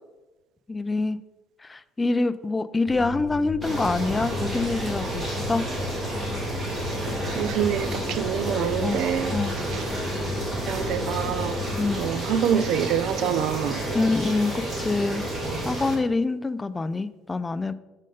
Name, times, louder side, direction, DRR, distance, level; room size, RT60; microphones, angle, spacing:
voice 1, 0.7-1.2 1.6-5.7 8.8-9.0 9.3-9.6 11.8-12.0 13.9-15.3 15.7-17.7, left 3 dB, 15° left, 0.3 m, -26 dB
sound 1, 2.9-12.1, left 5 dB, 35° left, 1.0 m, -35 dB
sound 2, 3.6-16.0, right 1 dB, 30° right, 1.8 m, -31 dB
voice 2, 7.4-9.4 9.7-9.8 10.7-11.6 12.0-13.8, right 9 dB, 65° right, 0.4 m, -26 dB
7.4 x 5.3 x 3.8 m
cardioid pair, 115°, 0 cm